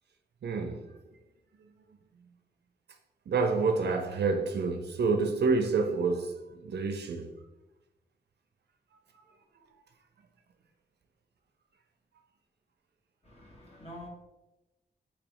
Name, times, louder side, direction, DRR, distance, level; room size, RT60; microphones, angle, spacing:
voice 1, 0.4-1.2 1.6-1.7 3.3-7.3 9.1-9.2 9.6-9.7, right 4 dB, 85° right, 0.5 m, -29 dB
voice 2, 13.2-14.1, left 1 dB, 35° left, 1.3 m, -47 dB
4.1 x 3.1 x 2.9 m
wide cardioid pair, 130°, 17 cm